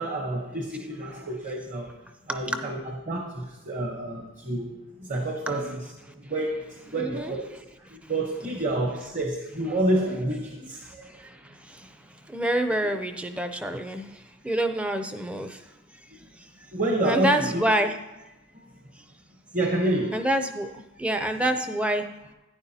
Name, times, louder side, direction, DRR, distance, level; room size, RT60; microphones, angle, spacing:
voice 1, 0.0-1.9 2.3-4.7 5.0-5.8 6.1-7.4 7.9-11.2 16.7-17.6 19.5-20.2, right 1 dB, 35° right, 1 dB, 0.9 m, -28 dB
voice 2, 7.0-7.4 11.2-11.3 11.7-11.8 12.3-14.1 14.4-15.6 17.0-18.0 20.1-20.7 21.0-22.0, right 1 dB, 5° right, 7 dB, 0.4 m, -26 dB
11.0 x 9.5 x 2.8 m, 1.0 s
head